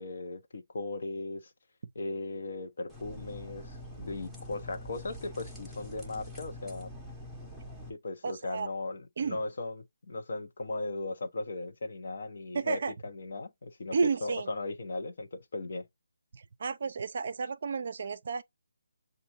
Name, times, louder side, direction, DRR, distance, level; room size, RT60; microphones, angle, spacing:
voice 1, 0.0-1.5 1.9-6.9 7.9-13.9 14.2-15.9, left 2 dB, 60° left, 0.9 m, -37 dB
sound 1, 2.9-7.9, left 1 dB, ahead, 0.8 m, -45 dB
voice 2, 8.2-8.7 9.2-9.4 12.5-12.9 13.9-14.5 16.3-18.4, right 5 dB, 50° right, 0.5 m, -32 dB
6.9 x 2.6 x 2.9 m
figure-of-eight pair, 155°, 0 cm